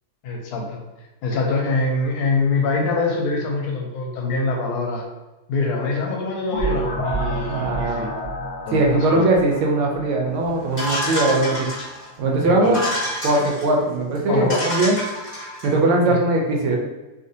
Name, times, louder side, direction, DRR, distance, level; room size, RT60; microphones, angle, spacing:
voice 1, 0.2-0.8 1.2-5.1 5.5-8.1 8.7-9.2 12.4-12.7 14.3-14.7 16.1-16.2, left 3 dB, 80° left, 0 dB, 1.5 m, -24 dB
sound 1, 6.5-11.2, right 1 dB, 60° left, 0.5 m, -30 dB
voice 2, 7.5-8.1 8.7-11.7 12.2-12.8 13.2-15.0 15.6-16.8, right 2 dB, 75° right, 0 dB, 1.3 m, -20 dB
sound 2, 10.8-12.1 12.6-13.7 14.2-14.3 14.5-15.7, equal, 30° left, 1.2 m, -27 dB
3.4 x 2.4 x 2.6 m, 1.1 s
omnidirectional pair, 2.4 m